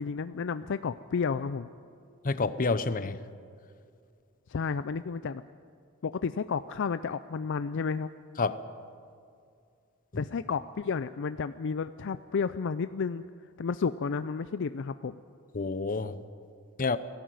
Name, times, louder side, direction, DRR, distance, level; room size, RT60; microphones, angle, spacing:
voice 1, 0.0-1.7 4.5-5.4 6.0-8.1 10.2-13.2 13.6-15.2, left 5 dB, 60° left, 13 dB, 0.4 m, -31 dB
voice 2, 2.2-3.2 8.4-8.6 10.1-10.2 15.5-16.2 16.8-17.0, left 4 dB, 40° left, 13 dB, 0.8 m, -28 dB
19.0 x 15.5 x 9.2 m, 2.3 s
head